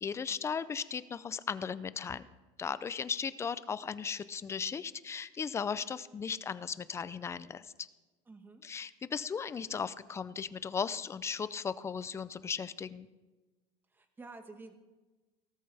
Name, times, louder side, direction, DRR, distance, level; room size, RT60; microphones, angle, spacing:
voice 1, 0.0-2.3 2.6-7.9 8.6-13.1, left 6 dB, 15° left, 15 dB, 0.4 m, -36 dB
voice 2, 8.3-8.6 13.9-14.7, right 3 dB, 10° right, 7 dB, 1.3 m, -50 dB
17.5 x 13.0 x 3.4 m, 1.2 s
cardioid pair, 150°, 16 cm